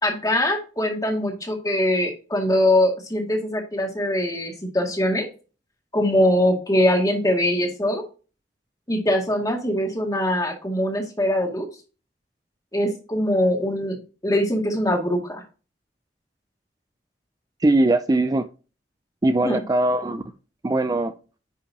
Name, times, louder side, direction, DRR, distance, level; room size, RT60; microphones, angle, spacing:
voice 1, 0.0-5.3 5.9-8.0 8.9-11.7 12.7-14.0 14.2-15.4 19.4-19.6, left 1 dB, 20° left, 2.0 m, -22 dB
voice 2, 17.6-18.5 19.2-20.2 20.6-21.1, right 2 dB, 20° right, 0.4 m, -20 dB
9.9 x 5.5 x 2.8 m
head